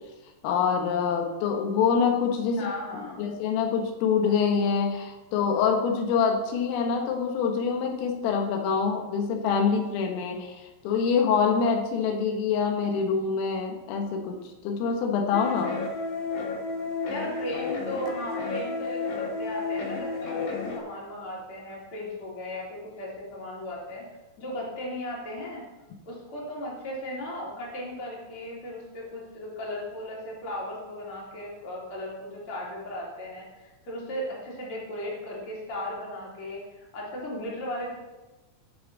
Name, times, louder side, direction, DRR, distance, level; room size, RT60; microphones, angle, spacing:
voice 1, 0.4-15.7, left 6 dB, 90° left, 2 dB, 4.0 m, -25 dB
voice 2, 2.6-3.2 17.1-24.0 24.4-25.6 26.0-36.6 36.9-37.9, left 1 dB, 30° left, -4 dB, 3.4 m, -36 dB
sound 1, 15.3-20.8, left 4 dB, 60° left, 2.1 m, -32 dB
18.5 x 7.1 x 4.1 m, 1.1 s
omnidirectional pair, 5.7 m